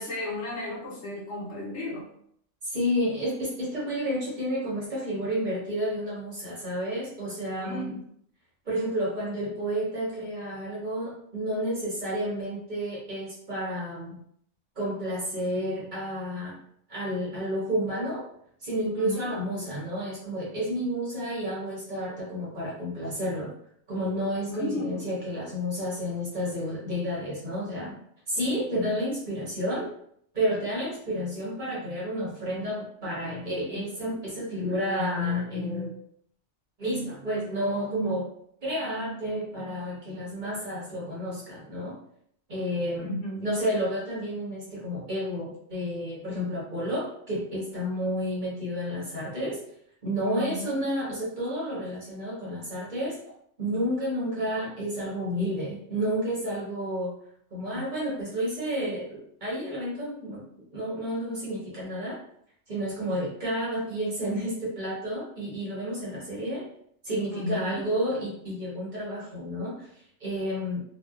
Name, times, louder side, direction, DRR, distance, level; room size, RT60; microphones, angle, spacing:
voice 1, 0.0-2.1 7.6-8.0 19.0-19.3 24.5-25.0 43.0-43.5 50.3-50.9 57.7-57.8 67.3-67.8, left 1 dB, 75° left, -4 dB, 1.1 m, -34 dB
voice 2, 2.6-7.9 8.7-14.2 14.8-16.6 16.9-18.2 18.6-23.5 23.9-27.9 28.3-29.9 30.3-35.9 36.8-38.3 38.6-42.0 42.5-43.1 43.4-49.6 50.0-53.2 53.6-57.1 57.5-60.4 60.7-62.2 62.7-66.6 67.0-69.9 70.2-70.8, equal, 45° right, -7 dB, 1.0 m, -30 dB
2.7 x 2.2 x 2.3 m, 0.68 s
omnidirectional pair, 1.2 m